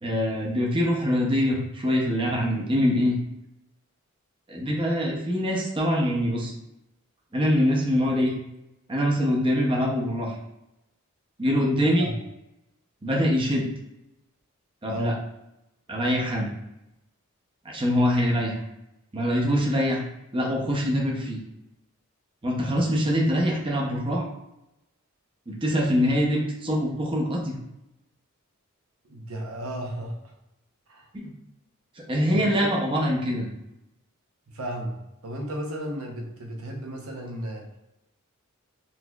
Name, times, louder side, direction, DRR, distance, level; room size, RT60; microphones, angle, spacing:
voice 1, 0.0-3.2 4.5-6.5 7.3-8.3 8.9-10.3 11.4-12.1 13.0-13.6 14.8-15.1 15.9-16.5 17.6-18.6 19.1-20.0 20.3-21.4 22.4-24.3 25.5-27.6 31.1-31.3 32.1-33.5, equal, 25° right, -2 dB, 0.6 m, -24 dB
voice 2, 29.0-30.3 30.9-31.1 32.3-32.7 34.5-35.0 35.2-37.7, right 1 dB, 80° right, 1 dB, 0.8 m, -34 dB
4.0 x 2.9 x 2.3 m, 0.90 s
head